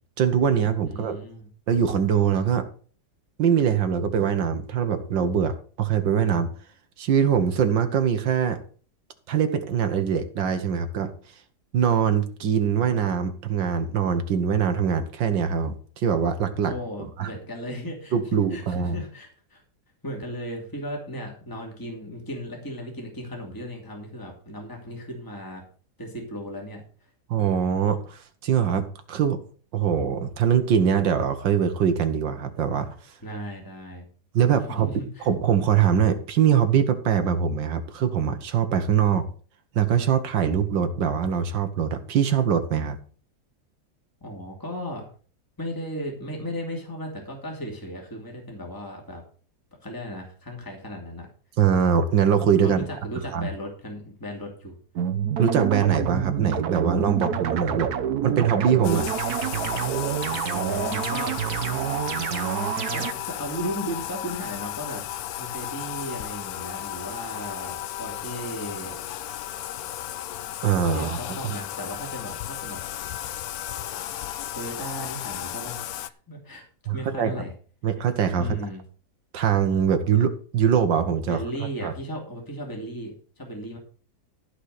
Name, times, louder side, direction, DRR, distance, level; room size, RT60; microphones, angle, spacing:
voice 1, 0.2-1.2 1.7-2.7 3.4-6.5 7.0-8.6 9.3-11.1 11.7-16.7 17.2-17.3 18.1-18.9 27.3-29.4 29.7-33.0 34.3-34.9 35.3-39.3 39.8-43.0 51.6-52.9 53.3-53.5 55.4-57.9 58.2-59.1 70.6-71.4 76.9-77.3 77.8-78.6 79.3-81.9, right 7 dB, 85° right, 8 dB, 1.9 m, -23 dB
voice 2, 0.8-1.5 16.6-18.2 18.5-19.6 20.0-25.7 26.0-27.1 33.2-34.1 34.8-35.3 44.2-45.1 45.6-49.2 49.8-51.3 52.6-54.7 60.5-61.4 62.9-65.0 65.4-68.9 70.9-72.8 74.5-76.6 76.9-77.5 78.4-78.8 81.3-83.8, equal, 10° left, 0 dB, 2.7 m, -36 dB
sound 1, 55.0-63.1, right 9 dB, 65° right, 1.3 m, -27 dB
Bathtub (filling or washing), 58.8-76.1, left 12 dB, 65° left, 1.0 m, -34 dB
14.5 x 5.0 x 6.6 m, 0.42 s
omnidirectional pair, 1.9 m